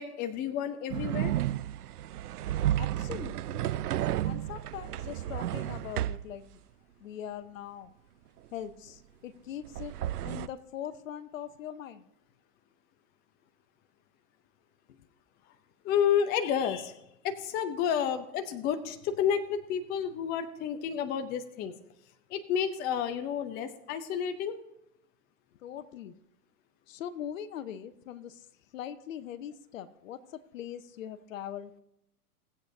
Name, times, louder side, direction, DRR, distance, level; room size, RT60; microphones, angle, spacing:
voice 1, 0.0-1.3 15.8-17.0 17.2-21.7 22.3-24.6, left 8 dB, 20° left, 9 dB, 0.6 m, -30 dB
sound 1, 0.9-6.3 9.6-10.5, right 12 dB, 80° right, 0.6 m, -32 dB
voice 2, 2.8-3.7 4.2-6.6 7.0-7.9 8.5-9.9 10.2-12.1 14.9-15.1 25.6-26.1 26.9-28.5 28.7-31.7, left 10 dB, 60° left, 13 dB, 0.9 m, -41 dB
18.5 x 8.3 x 2.7 m, 0.84 s
hypercardioid pair, 115°, 45 cm